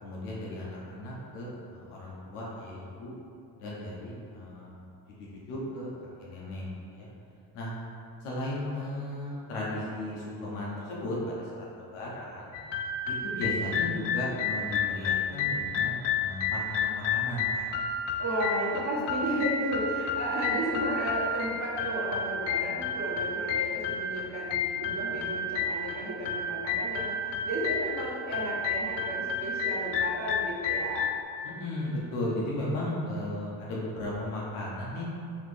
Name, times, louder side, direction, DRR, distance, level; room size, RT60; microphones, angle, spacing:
voice 1, 0.0-3.1 3.6-4.8 5.5-5.9 6.2-7.1 7.5-7.7 8.2-11.7 11.9-12.5 13.1-17.7 31.4-35.1, left 1 dB, 85° left, -5 dB, 0.9 m, -35 dB
sound 1, 12.5-31.2, left 4 dB, 60° left, 0.5 m, -31 dB
voice 2, 18.2-31.1, equal, 35° right, -6 dB, 1.4 m, -33 dB
4.1 x 3.1 x 3.3 m, 2.4 s
hypercardioid pair, 45°, 50 cm